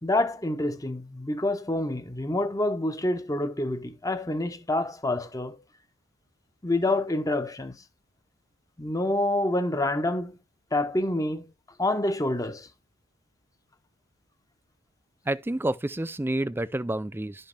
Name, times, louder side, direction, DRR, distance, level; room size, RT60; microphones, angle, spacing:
voice 1, 0.0-5.6 6.6-7.8 8.8-10.4 10.7-11.5 11.8-12.7, left 1 dB, 15° left, 0.9 m, -27 dB
voice 2, 15.3-17.5, right 1 dB, 10° right, 0.4 m, -29 dB
11.5 x 5.5 x 3.4 m
head